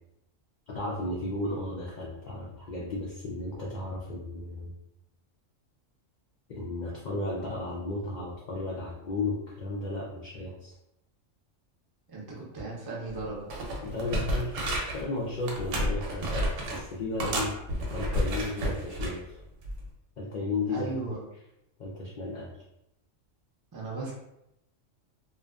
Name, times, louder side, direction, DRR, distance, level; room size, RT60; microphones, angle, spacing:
voice 1, 0.7-4.7 6.5-10.7 13.8-14.5 14.9-16.3 16.7-17.5 17.9-19.2 20.2-21.1 21.8-22.5, left 2 dB, 80° left, -5 dB, 0.4 m, -34 dB
voice 2, 12.1-13.5 17.2-17.5 20.7-21.2 23.7-24.1, right 3 dB, 35° right, -4 dB, 0.3 m, -37 dB
sound 1, 13.1-13.2 13.5-15.0 15.5-16.8 17.2-19.2 19.6-19.9, equal, 80° right, 0.9 m, -31 dB
2.5 x 2.2 x 2.2 m, 0.85 s
omnidirectional pair, 1.3 m